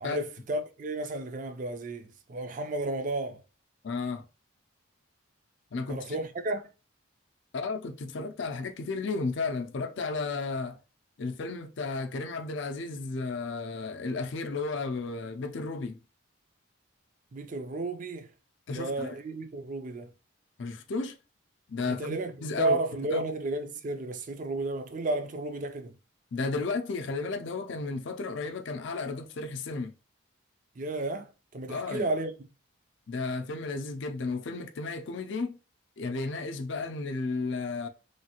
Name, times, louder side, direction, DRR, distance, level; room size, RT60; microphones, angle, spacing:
voice 1, 0.0-3.4 5.9-6.7 17.3-18.3 18.7-20.1 21.9-22.3 22.6-25.9 30.8-32.3, right 2 dB, 40° right, 0.4 m, -32 dB
voice 2, 3.8-4.2 5.7-6.2 7.5-10.8 11.2-16.0 18.7-19.2 20.6-21.2 21.7-23.3 26.3-29.9 31.7-32.1 33.1-35.6 36.0-37.9, left 3 dB, 60° left, 0.4 m, -33 dB
3.2 x 2.3 x 2.8 m
head